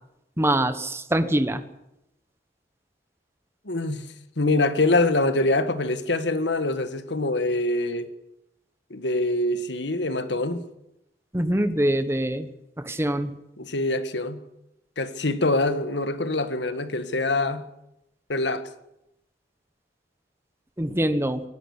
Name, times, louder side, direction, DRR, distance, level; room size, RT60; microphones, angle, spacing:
voice 1, 0.4-1.6 11.3-12.5 12.8-13.3 20.8-21.4, right 1 dB, 15° right, 1.2 m, -24 dB
voice 2, 3.7-4.1 4.4-8.1 8.9-10.6 13.6-14.4 15.0-17.6 18.3-18.6, left 2 dB, 80° left, 1.6 m, -24 dB
24.5 x 11.5 x 10.0 m
head